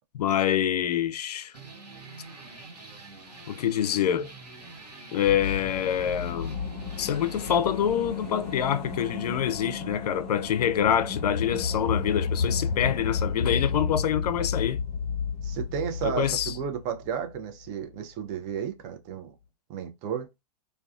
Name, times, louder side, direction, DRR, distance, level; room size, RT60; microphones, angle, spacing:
voice 1, 0.2-1.5 3.5-4.3 5.1-6.6 7.0-14.8 16.0-16.5, left 9 dB, 80° left, 0.4 m, -26 dB
sound 1, 1.5-10.6, right 3 dB, 90° right, 1.0 m, -46 dB
sound 2, 5.2-17.7 17.9-18.0, left 5 dB, 40° left, 1.0 m, -32 dB
voice 2, 15.4-19.3 19.7-20.3, right 8 dB, 35° right, 0.6 m, -33 dB
2.3 x 2.3 x 2.4 m
hypercardioid pair, 115°, 20 cm